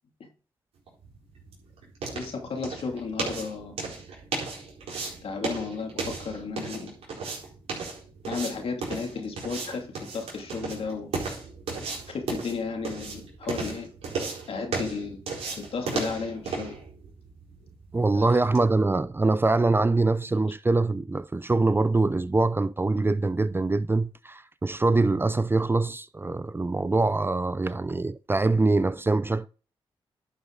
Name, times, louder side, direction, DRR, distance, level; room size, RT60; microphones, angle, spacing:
sound 1, 0.9-18.7, right 4 dB, 85° right, 4.3 m, -35 dB
voice 1, 2.1-3.8 5.2-7.0 8.3-11.1 12.1-13.9 14.5-15.2 15.7-16.8 18.1-18.4, left 4 dB, 70° left, 2.6 m, -33 dB
voice 2, 17.9-29.5, right 3 dB, 20° right, 0.5 m, -24 dB
11.5 x 6.3 x 3.9 m
cardioid pair, 60°, 10 cm